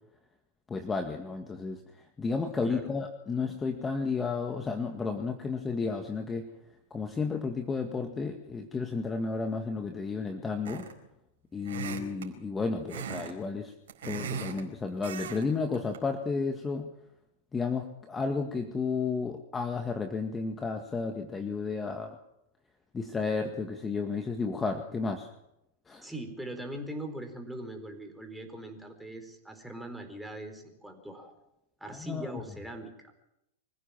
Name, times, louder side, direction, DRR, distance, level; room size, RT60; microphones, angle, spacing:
voice 1, 0.7-1.8 2.2-6.5 6.9-10.8 11.5-13.7 14.0-16.9 17.5-22.2 22.9-25.3 25.9-26.1 32.0-32.3, left 4 dB, 15° left, 5 dB, 1.9 m, -32 dB
sound 1, 10.6-11.1 11.6-12.3 12.9-13.3 13.6-14.6 15.0-15.4 15.7-16.0, right 6 dB, 65° right, 4.6 m, -38 dB
voice 2, 26.0-31.3 31.8-33.1, right 1 dB, 5° right, 5 dB, 4.5 m, -41 dB
25.0 x 15.5 x 7.4 m, 0.84 s
hypercardioid pair, 100°, 0 cm